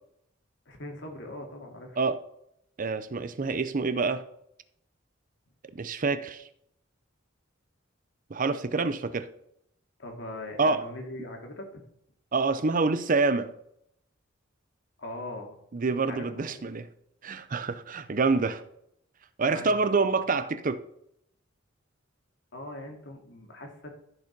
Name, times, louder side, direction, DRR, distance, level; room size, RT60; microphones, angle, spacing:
voice 1, 0.7-2.0 10.0-11.8 15.0-15.6 16.1-16.6 19.5-20.1 22.5-23.9, left 1 dB, 65° left, 2.4 m, -41 dB
voice 2, 2.8-4.2 5.7-6.5 8.3-9.3 10.6-10.8 12.3-13.5 15.7-16.9 17.2-18.6 19.4-20.8, right 4 dB, 40° right, 0.6 m, -27 dB
14.0 x 5.2 x 5.3 m
head